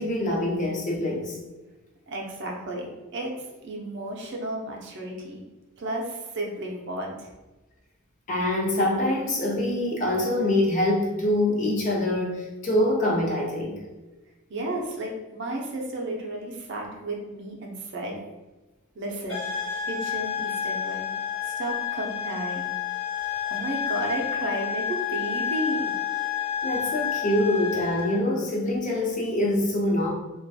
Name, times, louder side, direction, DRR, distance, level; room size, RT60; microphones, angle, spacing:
voice 1, 0.0-1.4 8.3-13.8 26.6-30.1, left 1 dB, 35° left, -2 dB, 0.5 m, -25 dB
voice 2, 2.1-3.3 3.6-5.4 5.8-7.3 14.5-18.2 18.9-19.5 19.9-21.1 21.4-22.7 23.5-25.9, right 1 dB, 55° right, 0 dB, 0.5 m, -33 dB
sound 1, 19.3-28.2, left 8 dB, 70° left, 1.0 m, -30 dB
2.3 x 2.2 x 2.6 m, 1.1 s
head